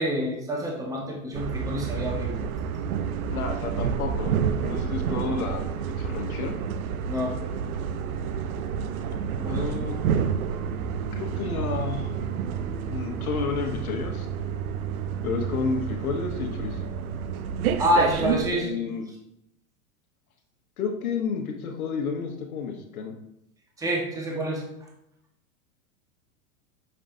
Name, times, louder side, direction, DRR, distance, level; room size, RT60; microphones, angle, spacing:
voice 1, 0.0-2.5 7.1-7.4 9.3-9.6 17.8-18.7 23.8-24.6, equal, 10° right, -1 dB, 1.1 m, -27 dB
sound 1, 1.3-18.5, right 7 dB, 85° right, 0.6 m, -29 dB
voice 2, 3.3-5.7 6.0-6.5 9.5-10.0 11.1-12.1 12.9-14.3 15.2-16.8 18.5-19.0 20.8-23.2, left 5 dB, 90° left, 2 dB, 1.2 m, -31 dB
6.6 x 5.7 x 2.6 m, 0.81 s
hypercardioid pair, 120°, 42 cm